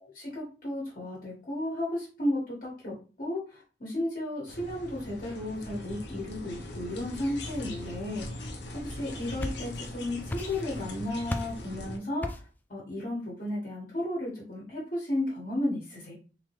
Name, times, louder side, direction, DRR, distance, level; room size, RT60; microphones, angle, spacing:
voice 1, 0.1-8.5 8.7-16.1, left 1 dB, 50° left, -5 dB, 1.4 m, -34 dB
sound 1, 4.5-12.0, left 1 dB, 75° left, 0.8 m, -40 dB
sound 2, 9.0-10.0 10.3-10.9 11.3-11.7 12.2-12.6, left 1 dB, 10° left, 0.3 m, -36 dB
3.8 x 2.9 x 3.1 m, 0.36 s
head